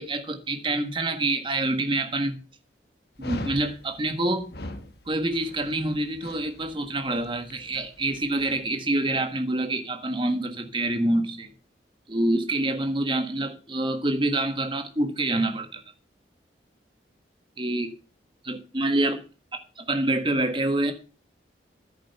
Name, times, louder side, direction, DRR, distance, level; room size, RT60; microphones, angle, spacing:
voice 1, 0.0-2.4 3.2-4.5 5.1-11.5 12.1-15.8 17.6-17.9 18.4-19.2 19.5-20.9, right 2 dB, 25° right, 1.5 m, -26 dB
Dog, 3.2-8.6, left 1 dB, 60° left, 1.3 m, -41 dB
10.5 x 9.1 x 5.5 m
head